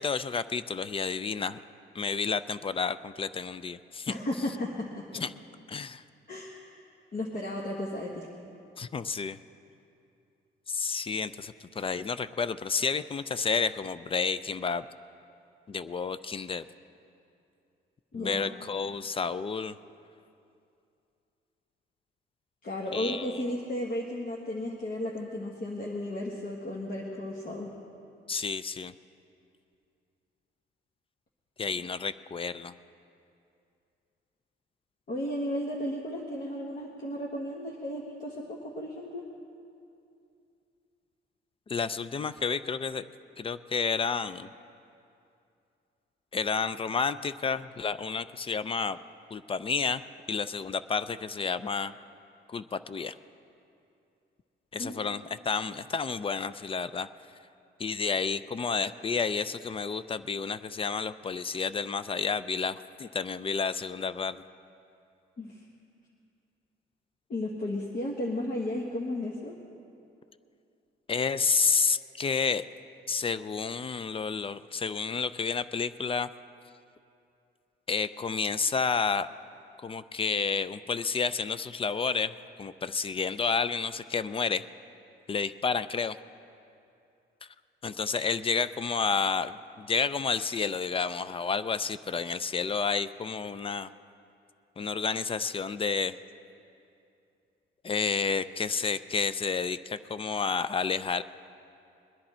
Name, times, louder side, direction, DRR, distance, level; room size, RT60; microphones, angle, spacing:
voice 1, 0.0-1.6 1.9-4.1 5.2-5.3 5.7-6.0 8.8-9.4 10.7-14.8 15.7-16.6 18.1-19.7 22.9-23.2 28.3-28.9 31.6-32.7 41.7-43.0 43.4-44.5 46.3-49.0 49.3-50.0 50.3-51.9 52.5-53.1 54.7-57.1 57.8-64.4 71.1-72.6 73.1-76.3 77.9-79.3 79.8-82.3 82.6-84.6 85.3-86.2 87.8-93.9 94.8-96.1 97.8-101.2, left 5 dB, 30° left, 14 dB, 0.4 m, -30 dB
voice 2, 4.1-5.2 6.3-6.6 7.1-8.3 18.1-18.5 22.6-27.7 35.1-39.2 54.8-55.0 65.4-65.6 67.3-69.6, left 1 dB, 45° left, -2 dB, 1.4 m, -34 dB
21.0 x 10.5 x 4.3 m, 2.6 s
cardioid pair, 90°, 20 cm